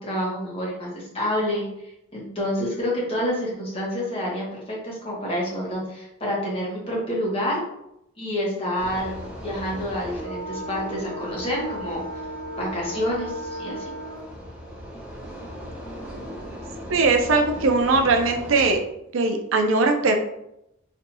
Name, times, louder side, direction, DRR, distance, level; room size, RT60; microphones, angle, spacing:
voice 1, 0.0-1.7 2.1-7.6 8.2-9.2 9.4-12.0 12.6-13.9, equal, 30° left, -4 dB, 1.1 m, -28 dB
sound 1, 8.8-18.7, equal, 5° right, 0.7 m, -36 dB
voice 2, 16.9-18.8 19.1-20.1, right 3 dB, 80° right, 5 dB, 0.5 m, -20 dB
4.3 x 2.6 x 2.7 m, 0.82 s
head